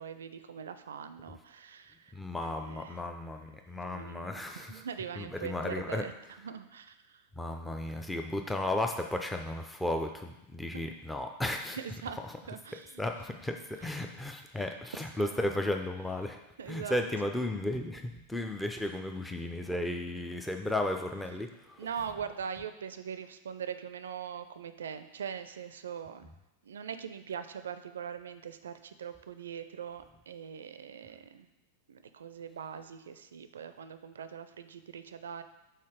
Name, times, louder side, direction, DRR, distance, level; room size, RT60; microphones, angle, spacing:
voice 1, 0.0-2.1 2.4-3.0 3.8-6.1 6.4-7.2 10.7-10.9 11.7-12.2 12.5-13.0 13.8-13.9 15.2-15.4 16.6-17.0 21.8-26.3 26.6-31.5 31.9-35.4, right 7 dB, 65° right, 11 dB, 0.4 m, -42 dB
voice 2, 2.1-4.7 5.2-6.0 7.4-11.8 13.0-16.4 16.7-21.8, left 1 dB, 5° left, 4 dB, 0.5 m, -34 dB
5.7 x 4.1 x 4.8 m, 0.92 s
figure-of-eight pair, 90°, 0 cm